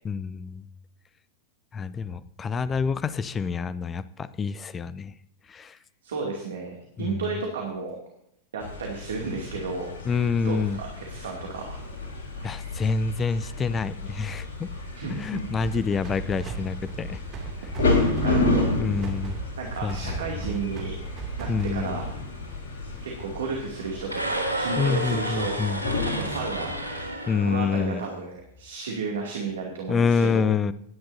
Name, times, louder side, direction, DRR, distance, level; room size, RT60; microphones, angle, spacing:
voice 1, 0.0-0.7 1.7-5.1 5.5-5.8 7.0-7.4 10.1-10.8 12.4-14.7 15.1-17.2 18.8-19.4 19.8-20.6 21.5-22.0 24.8-25.8 27.3-28.0 29.9-30.7, left 5 dB, 20° left, 17 dB, 0.6 m, -27 dB
voice 2, 6.0-8.0 8.5-9.9 10.2-11.8 14.9-15.5 17.9-18.7 19.6-20.9 21.4-22.1 23.0-25.6 26.0-26.8 27.5-30.5, right 4 dB, 65° right, 0 dB, 2.5 m, -33 dB
sound 1, 8.6-27.1, left 2 dB, 60° left, 4.2 m, -31 dB
sound 2, 15.6-22.4, right 7 dB, 30° right, 2.4 m, -37 dB
sound 3, 24.0-28.2, right 1 dB, 85° left, 2.7 m, -31 dB
19.0 x 10.5 x 2.7 m, 0.74 s
figure-of-eight pair, 90°, 0 cm